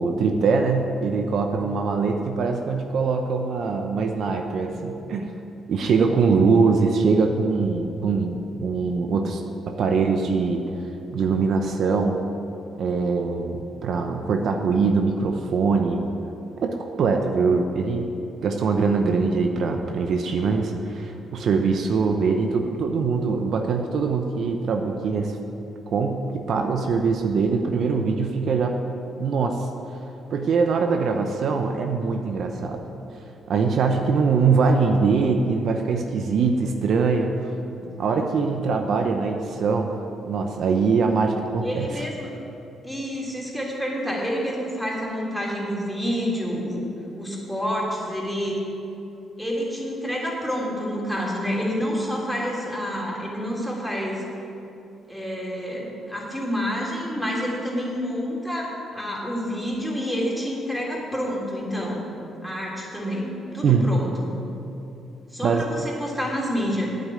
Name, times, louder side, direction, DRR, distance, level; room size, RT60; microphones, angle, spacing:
voice 1, 0.0-5.3 5.7-9.4 9.7-10.6 11.1-12.2 12.8-16.0 16.6-18.1 18.4-25.4 25.9-28.8 29.2-29.7 30.3-32.8 33.5-37.5 38.0-40.0 40.3-42.1 63.6-63.9 65.4-65.7, right 4 dB, 65° right, 4 dB, 0.9 m, -22 dB
voice 2, 41.6-42.3 42.8-46.8 47.2-48.6 49.4-54.2 55.1-62.0 62.4-64.3 65.3-66.9, equal, ahead, -4 dB, 3.3 m, -28 dB
9.1 x 7.8 x 8.9 m, 2.8 s
cardioid pair, 90°, 0 cm